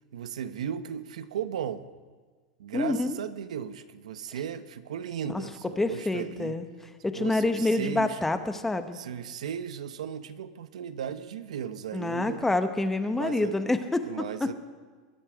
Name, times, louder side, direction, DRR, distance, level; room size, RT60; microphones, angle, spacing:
voice 1, 0.1-1.9 2.6-6.6 7.2-8.2 8.9-12.4 13.1-13.6 14.0-14.5, right 8 dB, 90° right, 12 dB, 0.8 m, -36 dB
voice 2, 2.7-3.2 5.3-5.4 5.8-6.6 7.0-9.0 11.9-14.0 14.4-14.5, left 2 dB, 10° left, 9 dB, 1.0 m, -27 dB
22.5 x 9.8 x 5.0 m, 1.4 s
supercardioid pair, 130°, 4 cm